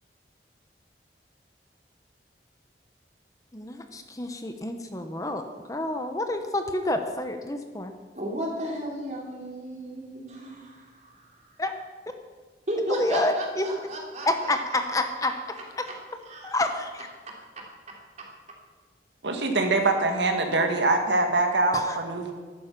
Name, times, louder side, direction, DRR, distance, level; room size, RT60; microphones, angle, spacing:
voice 1, 3.5-5.4 5.7-7.9 11.6-11.7 13.0-13.7 14.3-15.9 16.4-17.1 21.7-21.9, left 2 dB, 20° left, 6 dB, 0.8 m, -28 dB
voice 2, 8.1-11.2 12.7-14.8 16.2-16.5, equal, 40° right, -1 dB, 3.2 m, -33 dB
voice 3, 19.2-22.3, right 2 dB, 80° right, 4 dB, 1.7 m, -24 dB
14.0 x 11.5 x 6.0 m, 1.4 s
head